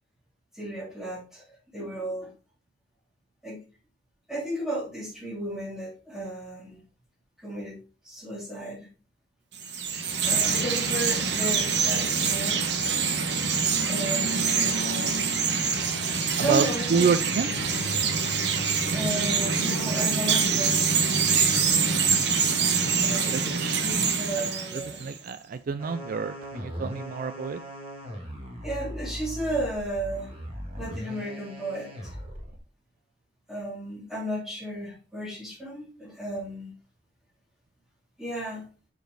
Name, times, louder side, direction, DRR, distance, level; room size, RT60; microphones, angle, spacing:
voice 1, 0.5-1.5 1.7-2.3 3.4-3.6 4.3-6.8 7.4-7.8 8.0-8.9 10.2-12.8 13.9-14.8 16.4-17.1 18.9-21.1 23.0-25.0 28.6-30.3 30.8-32.2 33.5-36.7 38.2-38.7, right 1 dB, ahead, -4 dB, 2.8 m, -34 dB
Chirp tweet, 9.5-25.2, right 5 dB, 65° right, 1.2 m, -25 dB
voice 2, 16.4-17.5 22.8-23.8 24.4-27.6, right 5 dB, 50° right, 12 dB, 0.4 m, -29 dB
sound 1, 25.8-32.6, equal, 30° right, 2.1 m, -39 dB
6.7 x 4.8 x 3.9 m, 0.34 s
head